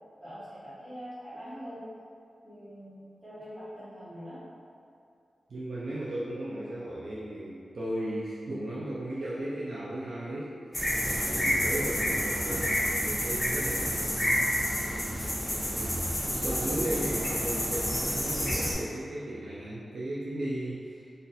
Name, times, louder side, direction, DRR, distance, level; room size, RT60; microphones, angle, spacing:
voice 1, 0.2-1.8 2.4-4.4, equal, 25° right, -12 dB, 1.3 m, -43 dB
voice 2, 5.5-10.5 10.9-14.2 14.8-21.1, right 1 dB, 60° right, -8 dB, 0.4 m, -36 dB
sound 1, 10.7-18.7, equal, 15° left, 0.8 m, -29 dB
3.9 x 2.5 x 2.7 m, 2.4 s
wide cardioid pair, 145°, 0 cm